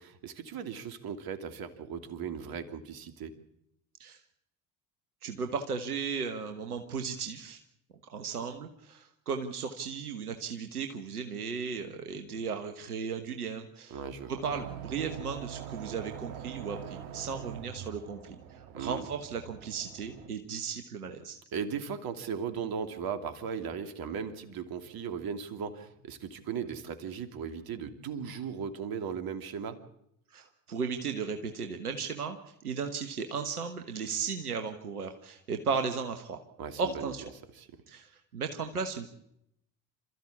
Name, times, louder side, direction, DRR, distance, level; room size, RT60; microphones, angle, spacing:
voice 1, 0.0-3.3 13.9-14.4 18.7-19.1 21.5-29.8 36.6-37.1 37.6-37.7, right 7 dB, 55° right, 8 dB, 2.9 m, -37 dB
voice 2, 5.2-7.6 8.1-14.0 14.3-21.4 30.3-32.4 32.6-36.4 36.8-37.2 37.9-39.1, right 5 dB, 90° right, 6 dB, 1.4 m, -35 dB
sound 1, 14.5-20.3, right 9 dB, 70° right, 2.0 m, -43 dB
27.5 x 14.0 x 8.4 m, 0.76 s
hypercardioid pair, 60°, 43 cm